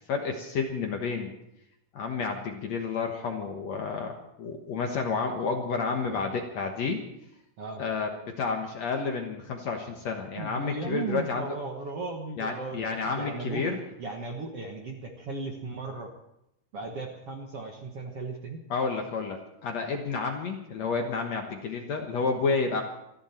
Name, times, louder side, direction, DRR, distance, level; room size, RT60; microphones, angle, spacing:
voice 1, 0.1-1.3 1.9-7.0 7.8-11.5 12.4-13.8 18.7-22.8, left 4 dB, 60° left, 3 dB, 1.8 m, -30 dB
voice 2, 10.4-12.8 13.1-13.6 14.0-16.1 16.7-18.6, right 3 dB, 60° right, 2 dB, 1.6 m, -36 dB
28.5 x 11.0 x 4.4 m, 0.84 s
omnidirectional pair, 4.7 m